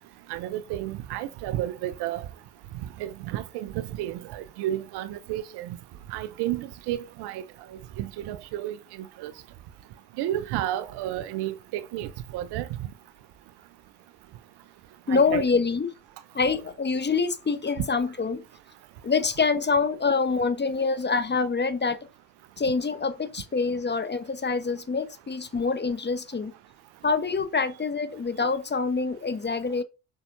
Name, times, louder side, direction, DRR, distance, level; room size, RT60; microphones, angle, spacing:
voice 1, 0.3-2.2 3.0-5.8 6.1-7.4 8.0-9.3 10.2-12.7 15.1-15.4, right 13 dB, 75° right, 0.8 m, -32 dB
voice 2, 15.1-15.9 16.3-18.4 19.0-22.0 22.6-26.5 27.0-29.8, left 4 dB, 25° left, 1.0 m, -26 dB
6.7 x 5.6 x 2.6 m
hypercardioid pair, 50°, 41 cm